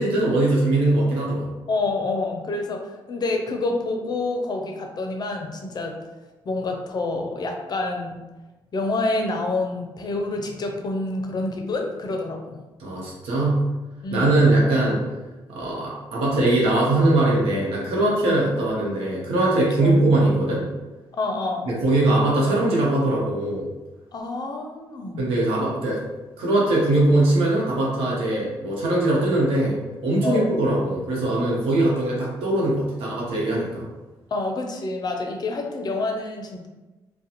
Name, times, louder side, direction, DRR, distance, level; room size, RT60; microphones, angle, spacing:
voice 1, 0.0-1.5 12.8-13.6 14.1-15.0 15.5-20.7 21.7-23.7 25.2-26.0 26.4-33.9, right 2 dB, 85° right, -4 dB, 0.8 m, -21 dB
voice 2, 1.7-6.0 6.5-8.2 8.7-12.6 14.0-14.3 18.3-18.4 19.8-20.2 21.2-21.7 24.1-25.3 30.2-30.5 34.3-36.7, left 2 dB, 45° left, 3 dB, 0.5 m, -27 dB
2.4 x 2.1 x 2.8 m, 1.1 s
supercardioid pair, 65°, 9 cm